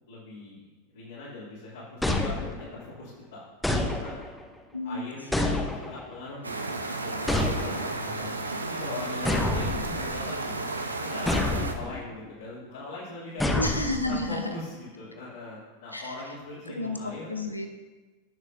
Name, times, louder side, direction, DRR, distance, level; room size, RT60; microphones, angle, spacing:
voice 1, 0.1-3.4 3.9-4.1 4.8-6.7 7.0-10.5 11.0-13.6 14.0-17.3, left 2 dB, 60° left, -9 dB, 2.9 m, -41 dB
sound 1, 2.0-2.9 3.6-4.5 5.3-6.2 7.3-8.1 9.2-10.3 11.3-12.0 13.4-14.3, left 2 dB, 5° left, 0.9 m, -28 dB
sound 2, 6.4-11.7, right 2 dB, 80° right, 0.8 m, -33 dB
voice 2, 13.6-14.4 15.9-16.0 16.8-17.7, left 2 dB, 85° left, 5 dB, 0.9 m, -31 dB
17.0 x 6.5 x 2.7 m, 1.3 s
figure-of-eight pair, 90°, 0 cm